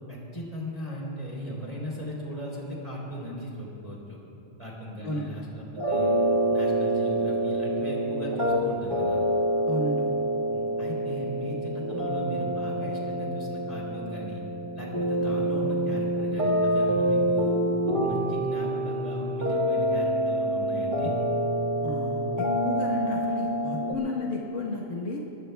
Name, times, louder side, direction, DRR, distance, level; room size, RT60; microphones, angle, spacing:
voice 1, 0.1-4.2 4.6-6.1 6.5-9.2 10.5-14.4 14.7-17.6 18.0-21.1, equal, 30° left, -4 dB, 3.4 m, -37 dB
sound 1, 5.8-23.9, right 1 dB, 40° right, 1.9 m, -27 dB
voice 2, 9.7-10.1 21.8-25.2, left 1 dB, 75° left, -3 dB, 1.6 m, -33 dB
20.5 x 20.0 x 2.3 m, 2.8 s
omnidirectional pair, 1.3 m